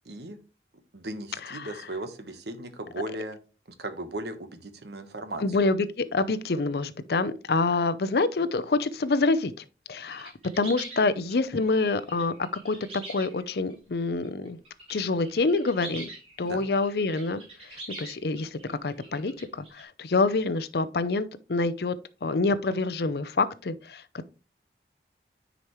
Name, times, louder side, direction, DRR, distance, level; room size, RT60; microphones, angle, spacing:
voice 1, 0.0-0.4 0.9-3.4 3.8-5.4 16.4-16.7, right 1 dB, 75° right, 1.2 m, -37 dB
voice 2, 5.4-9.5 9.9-12.3 12.6-12.8 13.1-14.6 14.9-16.1 16.4-17.4 18.0-22.0 22.2-24.0, left 3 dB, 65° left, 0.6 m, -26 dB
sound 1, 10.1-13.7 14.2-15.0 15.2-19.8, right 2 dB, 35° right, 3.5 m, -44 dB
9.6 x 5.1 x 3.1 m
head